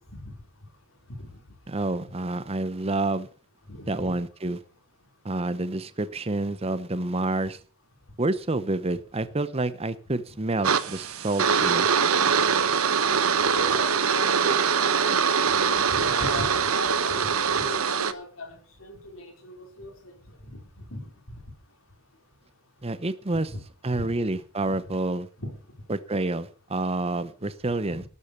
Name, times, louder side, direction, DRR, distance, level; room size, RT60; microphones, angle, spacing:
voice 1, 1.7-3.3 3.9-4.6 5.2-7.6 8.2-11.9 22.8-23.5 23.8-25.3 25.9-28.0, right 2 dB, 30° right, 13 dB, 0.8 m, -28 dB
voice 2, 3.7-4.1 13.3-19.9 20.5-20.6 20.9-21.1 23.5-23.6 23.9-24.1 24.7-24.8 25.4-25.5 27.9-28.0, left 1 dB, 65° left, 3 dB, 4.4 m, -38 dB
sound 1, 10.6-18.1, right 6 dB, 85° right, 1.0 m, -23 dB
12.5 x 8.4 x 6.8 m, 0.41 s
head